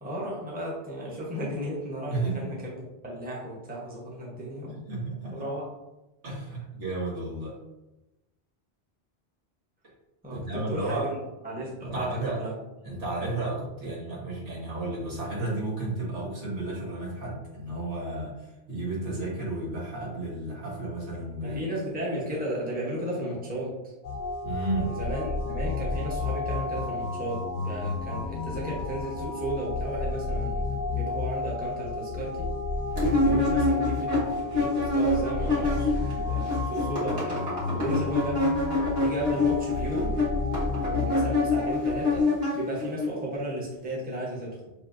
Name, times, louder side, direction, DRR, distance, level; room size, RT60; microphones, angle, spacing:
voice 1, 0.0-4.9 5.3-5.6 10.2-11.2 11.4-12.5 21.4-23.9 24.7-32.6 33.2-37.4 37.7-38.5 39.0-40.1 40.8-44.6, right 1 dB, 10° right, -4 dB, 0.8 m, -34 dB
voice 2, 2.1-2.5 4.9-5.5 6.2-7.6 10.3-11.1 11.8-12.4 12.8-21.6 24.4-24.9, right 2 dB, 80° right, -6 dB, 1.7 m, -32 dB
sound 1, 24.0-42.2, left 3 dB, 90° left, 0.9 m, -31 dB
sound 2, 33.0-36.1 36.4-43.1, left 2 dB, 40° right, 1.4 m, -26 dB
5.8 x 2.7 x 2.5 m, 0.98 s
omnidirectional pair, 1.2 m